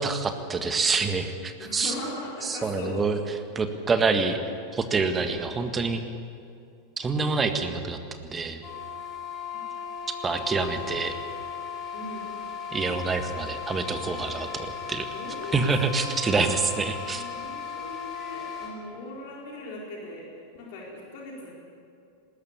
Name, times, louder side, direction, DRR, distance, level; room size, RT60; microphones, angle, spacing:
voice 1, 0.0-1.9 2.4-3.2 3.5-4.4 4.7-6.0 7.0-8.6 10.2-11.1 12.7-15.0 15.5-17.2, right 4 dB, 20° right, 7 dB, 1.8 m, -26 dB
voice 2, 1.6-3.0 5.2-5.5 9.5-9.6 11.9-12.4 15.1-16.2 17.0-20.3 20.5-21.5, left 1 dB, 50° left, -2 dB, 4.6 m, -39 dB
sound 1, 8.6-18.7, left 7 dB, 25° left, 5.6 m, -37 dB
20.0 x 19.0 x 8.7 m, 2.5 s
figure-of-eight pair, 90°, 0 cm